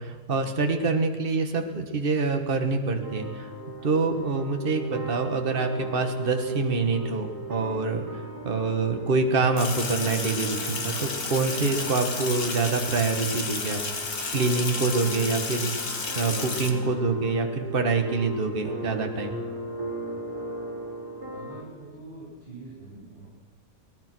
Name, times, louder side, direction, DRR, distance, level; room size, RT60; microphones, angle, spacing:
voice 1, 0.0-3.5 3.8-13.8 14.3-15.7 16.2-19.4, right 4 dB, 35° right, 5 dB, 1.9 m, -26 dB
sound 1, 3.0-21.6, right 2 dB, 75° right, 4.4 m, -38 dB
Sink (filling or washing), 9.6-16.7, left 4 dB, 65° left, 2.6 m, -32 dB
voice 2, 21.3-23.3, right 3 dB, 35° left, -8 dB, 8.4 m, -44 dB
24.0 x 17.5 x 6.3 m, 1.4 s
omnidirectional pair, 1.7 m